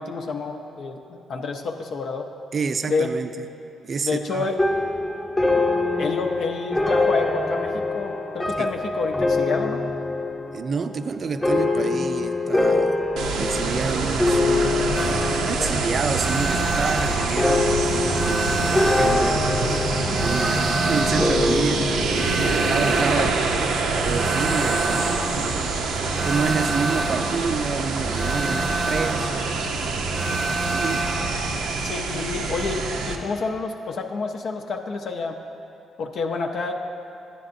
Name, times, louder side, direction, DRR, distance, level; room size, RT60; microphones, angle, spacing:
voice 1, 0.0-2.3 2.9-3.2 4.0-4.6 6.0-9.9 15.5-16.0 22.4-22.8 23.2-23.3 31.8-35.4 36.0-36.8, left 4 dB, 65° left, 2 dB, 0.4 m, -29 dB
voice 2, 2.5-3.3 3.8-4.5 8.6-8.7 10.5-13.1 13.4-14.8 15.4-21.8 22.7-23.7 24.0-29.7 30.4-31.1, right 5 dB, 45° right, 9 dB, 0.3 m, -29 dB
sound 1, 4.6-16.0 16.3-16.9 17.4-22.7, left 2 dB, 15° left, 0.7 m, -24 dB
sound 2, 13.2-33.2, right 3 dB, 90° right, 0.5 m, -26 dB
sound 3, 14.9-31.6, right 2 dB, 20° right, 0.6 m, -29 dB
9.9 x 9.5 x 2.5 m, 2.7 s
cardioid pair, 90°, 0 cm